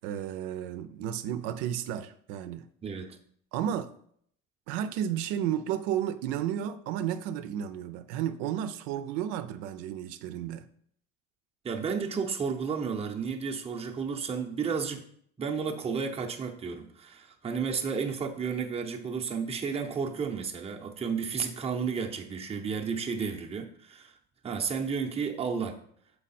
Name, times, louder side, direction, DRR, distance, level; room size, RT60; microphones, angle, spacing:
voice 1, 0.0-2.7 3.5-3.9 4.7-10.7, right 10 dB, 80° right, 0.6 m, -32 dB
voice 2, 2.8-3.2 11.6-15.1 15.4-24.1 24.4-25.8, right 6 dB, 15° right, 0.7 m, -32 dB
6.3 x 4.7 x 4.2 m
cardioid pair, 130°, 38 cm